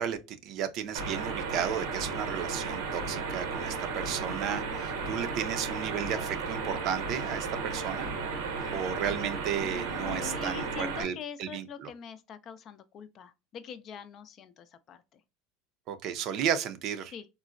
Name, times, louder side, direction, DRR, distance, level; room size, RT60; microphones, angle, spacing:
voice 1, 0.0-8.1 8.7-11.1 11.4-11.9 15.9-17.1, right 8 dB, 55° right, 0.5 m, -33 dB
sound 1, 0.9-11.0, right 4 dB, 85° right, 0.8 m, -34 dB
voice 2, 9.6-15.2 17.1-17.3, left 7 dB, 45° left, 0.4 m, -44 dB
3.8 x 2.1 x 2.4 m
supercardioid pair, 110°, 0 cm